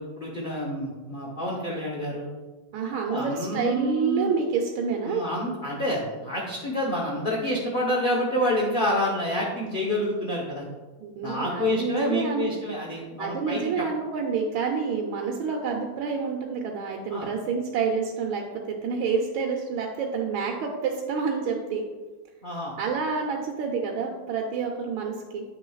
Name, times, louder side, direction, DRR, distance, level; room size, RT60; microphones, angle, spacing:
voice 1, 0.0-2.3 3.1-4.3 5.1-10.7 11.2-13.8 17.1-17.3 22.4-22.7, left 1 dB, 45° left, -4 dB, 0.6 m, -28 dB
voice 2, 2.7-5.2 11.0-12.5 13.2-21.8 22.8-25.4, right 5 dB, 90° right, 0 dB, 1.5 m, -28 dB
9.2 x 6.3 x 2.3 m, 1.3 s
omnidirectional pair, 2.2 m